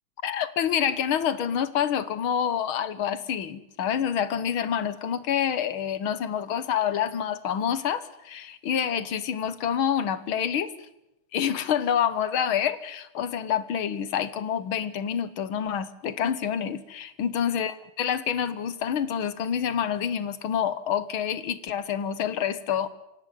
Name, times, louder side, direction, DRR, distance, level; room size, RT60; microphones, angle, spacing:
voice 1, 0.2-10.7 11.3-22.9, left 8 dB, 75° left, 15 dB, 2.1 m, -27 dB
25.5 x 18.0 x 9.3 m, 0.89 s
omnidirectional pair, 2.3 m